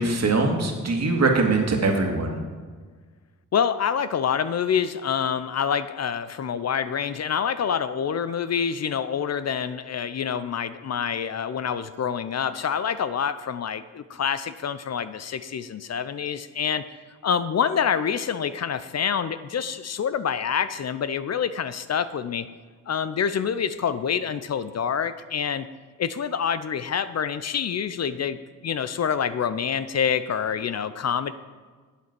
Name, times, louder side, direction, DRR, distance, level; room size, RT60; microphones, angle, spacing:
voice 1, 0.0-2.4, right 3 dB, 55° right, 2 dB, 1.9 m, -22 dB
voice 2, 3.5-16.8 17.2-22.5 22.9-25.7 26.0-31.3, left 7 dB, 50° left, 13 dB, 0.6 m, -27 dB
8.5 x 7.8 x 5.9 m, 1.5 s
cardioid pair, 70°, 33 cm